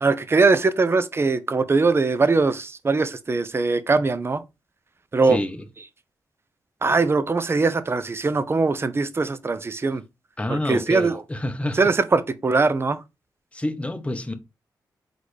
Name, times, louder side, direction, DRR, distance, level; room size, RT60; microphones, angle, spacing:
voice 1, 0.0-4.4 5.1-5.4 6.8-10.0 10.5-11.2 11.8-13.0, right 3 dB, 35° right, 0.6 m, -21 dB
voice 2, 5.3-5.7 10.4-11.9 13.5-14.3, left 1 dB, 15° left, 0.8 m, -28 dB
4.0 x 3.2 x 3.2 m
cardioid pair, 60°, 7 cm